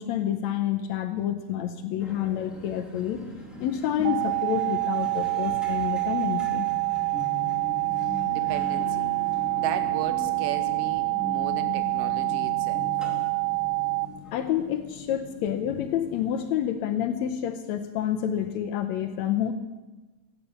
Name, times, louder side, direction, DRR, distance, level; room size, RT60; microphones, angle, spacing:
voice 1, 0.0-3.3 3.6-6.7 14.3-19.5, left 10 dB, 75° left, 7 dB, 1.8 m, -28 dB
sound 1, 2.0-16.6, left 2 dB, ahead, 1.7 m, -40 dB
sound 2, 4.1-14.1, right 30 dB, 90° right, 2.2 m, -27 dB
voice 2, 8.0-9.1 9.6-12.9, right 9 dB, 70° right, 9 dB, 1.5 m, -36 dB
15.5 x 8.1 x 7.1 m, 1.2 s
omnidirectional pair, 3.7 m